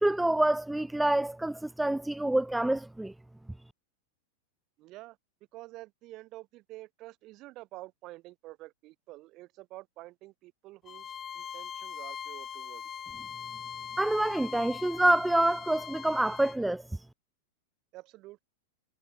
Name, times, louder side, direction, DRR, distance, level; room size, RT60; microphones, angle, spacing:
voice 1, 0.0-3.1 14.0-16.8, right 1 dB, 5° right, 0.5 m, -27 dB
voice 2, 4.8-5.2 5.5-12.8 17.9-18.4, right 19 dB, 45° right, 6.4 m, -48 dB
Bowed string instrument, 10.9-16.6, left 8 dB, 25° left, 3.2 m, -41 dB
hypercardioid pair, 110°, 0 cm